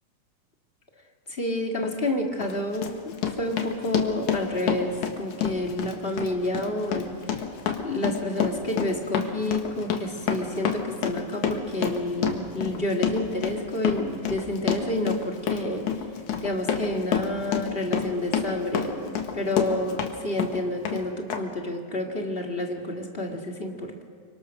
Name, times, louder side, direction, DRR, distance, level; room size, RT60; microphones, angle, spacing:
voice 1, 1.3-7.2 7.8-15.9 16.4-24.0, left 1 dB, 25° left, 2 dB, 1.7 m, -29 dB
Run, 1.8-1.9 2.4-20.1 20.4-21.0 21.3-21.4, left 8 dB, 75° left, 2.9 m, -29 dB
27.0 x 24.5 x 6.5 m, 2.1 s
omnidirectional pair, 3.4 m